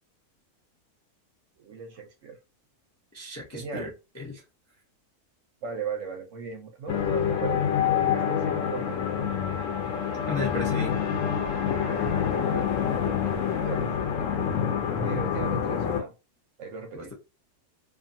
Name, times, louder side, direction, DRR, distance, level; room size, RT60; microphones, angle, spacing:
voice 1, 1.6-2.4 3.5-3.9 5.6-9.0 12.5-14.5 15.0-16.1 16.6-17.1, right 6 dB, 65° right, 0.8 m, -38 dB
voice 2, 3.1-3.9 4.2-4.4 10.3-11.0 16.9-17.1, left 3 dB, 20° left, 0.4 m, -34 dB
sound 1, 6.9-16.0, left 8 dB, 65° left, 0.9 m, -27 dB
2.5 x 2.5 x 2.6 m
omnidirectional pair, 1.6 m